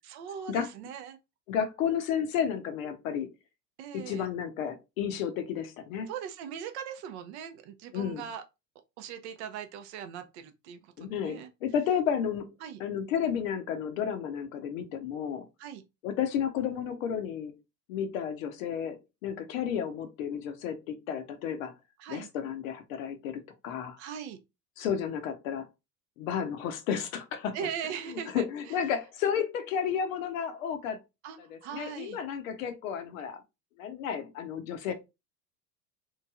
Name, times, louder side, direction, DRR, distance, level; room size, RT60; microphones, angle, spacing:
voice 1, 0.0-1.2 3.8-4.3 6.1-8.4 9.0-11.5 12.6-12.8 15.6-15.8 22.0-22.3 24.0-24.4 27.5-28.7 31.2-32.2, right 8 dB, 45° right, 0.5 m, -40 dB
voice 2, 1.5-3.3 3.9-6.1 7.9-8.3 11.0-12.5 12.8-15.5 16.0-17.5 17.9-21.7 22.1-24.0 24.8-25.7 26.2-27.7 28.1-31.0 31.4-33.4 33.8-34.9, left 8 dB, 55° left, 0.7 m, -32 dB
3.1 x 2.5 x 2.3 m
figure-of-eight pair, 80°, 49 cm